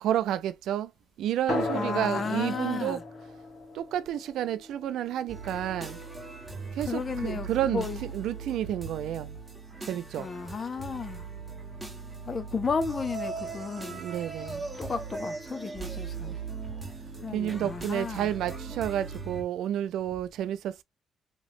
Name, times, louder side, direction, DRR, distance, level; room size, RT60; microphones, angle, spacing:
voice 1, 0.0-0.9 1.2-3.0 3.7-6.0 6.7-9.4 9.9-10.3 13.9-14.6 16.3-16.4 17.3-20.8, right 11 dB, 80° right, 0.3 m, -30 dB
sound 1, 1.5-6.5, left 2 dB, 60° left, 1.4 m, -37 dB
voice 2, 1.7-3.0 6.9-8.0 10.2-11.3 12.2-14.0 14.8-16.4 17.2-18.3, left 5 dB, 40° left, 0.5 m, -33 dB
sound 2, 5.3-19.4, right 4 dB, 10° right, 1.4 m, -39 dB
3.0 x 3.0 x 2.5 m
cardioid pair, 90°, 0 cm